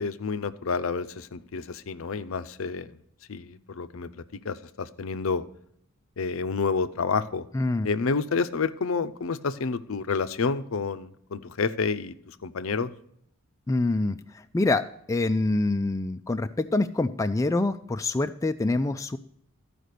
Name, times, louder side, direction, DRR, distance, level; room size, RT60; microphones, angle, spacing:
voice 1, 0.0-3.0 3.3-5.4 6.2-7.5 7.8-12.9, left 4 dB, 65° left, 12 dB, 0.6 m, -29 dB
voice 2, 7.5-7.9 13.7-19.2, left 2 dB, 15° left, 8 dB, 0.3 m, -26 dB
13.0 x 5.0 x 6.6 m, 0.71 s
head